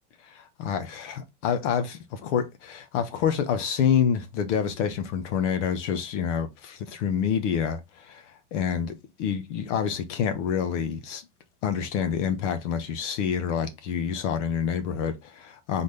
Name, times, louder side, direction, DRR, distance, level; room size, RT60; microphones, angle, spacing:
voice 1, 0.3-8.2 8.5-8.9 9.2-11.2 11.6-15.8, left 7 dB, 75° left, 1.1 m, -27 dB
4.1 x 3.6 x 3.3 m
supercardioid pair, 140°, 36 cm